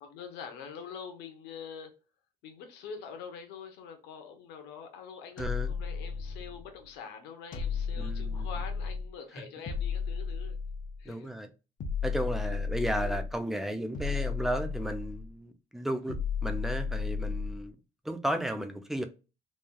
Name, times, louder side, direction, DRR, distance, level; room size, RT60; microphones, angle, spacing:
voice 1, 0.0-1.9 2.4-10.6 11.0-11.3 12.4-12.5, left 6 dB, 85° left, 0.8 m, -45 dB
sound 1, 5.4-6.7 7.5-9.2 9.7-11.1 11.8-13.4 13.9-15.3 16.1-17.7, left 5 dB, 50° left, 0.6 m, -33 dB
voice 2, 5.4-5.7 8.0-8.5 11.1-11.5 12.0-17.8 18.0-19.0, right 1 dB, ahead, 0.4 m, -34 dB
3.2 x 2.2 x 2.3 m
cardioid pair, 110°, 17 cm